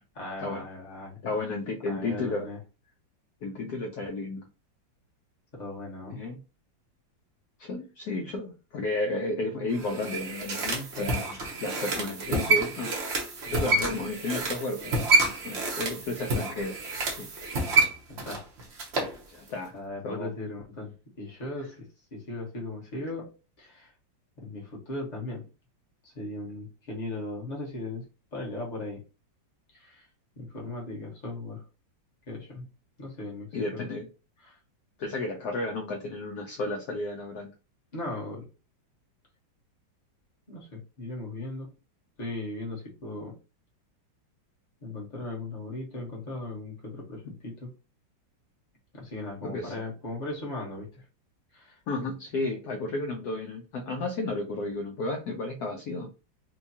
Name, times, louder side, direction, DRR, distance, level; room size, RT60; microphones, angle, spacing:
voice 1, 0.1-1.4 1.9-2.6 5.5-6.2 13.5-13.9 18.1-18.5 19.7-23.9 24.4-25.5 26.0-28.0 28.3-29.0 29.7-30.1 30.4-31.6 32.3-32.7 33.0-33.8 34.4-34.6 37.9-38.5 40.5-41.7 42.2-43.4 44.8-47.7 48.9-51.0 51.5-51.8, left 2 dB, 25° left, -3 dB, 1.1 m, -38 dB
voice 2, 1.2-2.5 3.4-4.5 6.1-6.4 7.6-12.9 13.5-15.0 15.4-16.8 17.2-17.3 19.3-19.7 20.0-20.3 33.5-34.1 35.0-37.5 47.2-47.3 49.4-49.7 51.9-56.1, left 2 dB, 70° left, 2 dB, 1.0 m, -32 dB
sound 1, 9.7-19.2 19.5-19.6, right 2 dB, 50° right, 0.8 m, -28 dB
4.5 x 2.3 x 2.7 m, 0.31 s
omnidirectional pair, 2.0 m